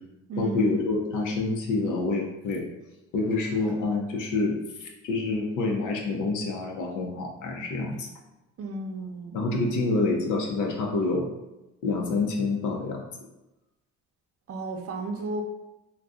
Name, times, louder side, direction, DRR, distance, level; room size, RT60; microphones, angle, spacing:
voice 1, 0.4-2.6 3.1-8.1 9.3-11.3 11.8-13.1, left 3 dB, 80° left, 0 dB, 0.7 m, -27 dB
voice 2, 8.6-9.4 14.5-15.4, right 3 dB, 50° right, 2 dB, 0.6 m, -33 dB
2.5 x 2.3 x 3.6 m, 0.98 s
cardioid pair, 90°, 30 cm